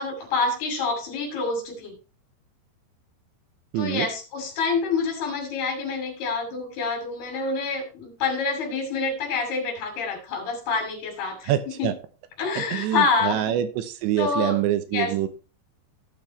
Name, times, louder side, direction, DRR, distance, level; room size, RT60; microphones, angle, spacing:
voice 1, 0.0-1.9 3.8-11.5 11.8-11.9 12.4-13.6 14.2-14.6 14.9-15.1, left 4 dB, 60° left, 2 dB, 4.5 m, -27 dB
voice 2, 3.7-4.1 11.4-11.9 12.6-15.3, right 12 dB, 80° right, 10 dB, 3.0 m, -25 dB
16.0 x 6.0 x 3.1 m, 0.34 s
omnidirectional pair, 5.2 m